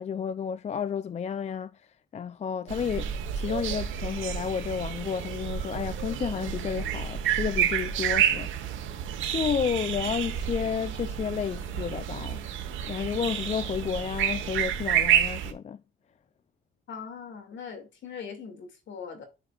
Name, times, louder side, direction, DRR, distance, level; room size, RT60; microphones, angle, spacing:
voice 1, 0.0-1.8 2.1-8.8 9.3-12.4 12.9-15.8, left 7 dB, 35° left, 0.4 m, -31 dB
sound 1, 2.7-15.5, right 9 dB, 85° right, 1.2 m, -29 dB
voice 2, 16.9-19.3, left 6 dB, 70° left, 2.4 m, -41 dB
9.7 x 5.2 x 2.4 m
cardioid pair, 90°, 20 cm